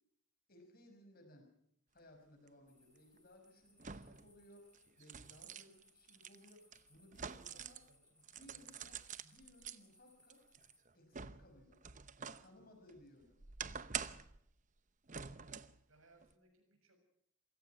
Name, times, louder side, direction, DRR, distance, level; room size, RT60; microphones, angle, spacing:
voice 1, 0.5-1.5 1.9-7.8 8.1-10.4 10.9-11.8 12.3-13.4, left 1 dB, 45° left, 4 dB, 5.7 m, -62 dB
sound 1, 2.5-2.6 3.8-4.3 4.7-7.9 8.2-9.8 10.3-12.5 12.9-14.4 15.1-15.8 16.2-16.3, right 7 dB, 35° right, 0.9 m, -47 dB
sound 2, 2.7-10.8, left 2 dB, 5° left, 3.9 m, -71 dB
voice 2, 7.4-8.1 8.4-8.9 12.6-12.7 15.9-17.0, right 2 dB, 80° right, 3 dB, 7.1 m, -69 dB
27.5 x 17.0 x 5.8 m, 0.71 s
head